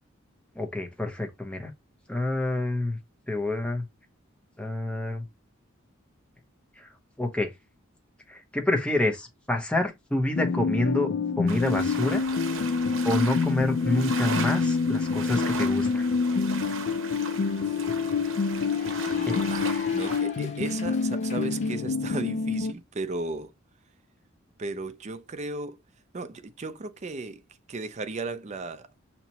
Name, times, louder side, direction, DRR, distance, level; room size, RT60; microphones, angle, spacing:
voice 1, 0.5-1.7 2.1-3.0 3.3-3.9 4.6-5.2 6.8-6.9 7.2-7.5 8.3-12.3 13.0-16.1 19.6-19.9, left 1 dB, 5° left, 0.9 m, -28 dB
sound 1, 10.3-22.7, left 4 dB, 55° left, 0.4 m, -27 dB
sound 2, 11.5-20.2, right 5 dB, 70° right, 0.8 m, -38 dB
Cheering / Applause, 16.9-21.8, left 5 dB, 35° left, 1.0 m, -45 dB
voice 2, 19.1-23.5 24.6-25.8 26.1-27.4 27.7-28.9, right 3 dB, 35° right, 0.4 m, -35 dB
5.7 x 2.9 x 2.8 m
head